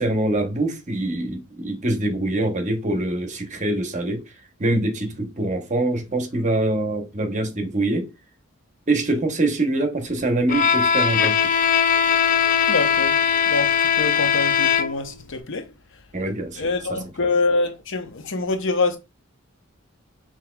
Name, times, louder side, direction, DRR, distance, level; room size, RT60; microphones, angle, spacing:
voice 1, 0.0-8.1 8.9-11.4 16.1-17.3, right 2 dB, 35° right, 0.9 m, -24 dB
Bowed string instrument, 10.5-15.2, left 7 dB, 40° left, 0.3 m, -20 dB
voice 2, 12.7-15.7 16.6-19.0, left 3 dB, 65° left, 0.8 m, -25 dB
5.8 x 3.1 x 2.2 m
head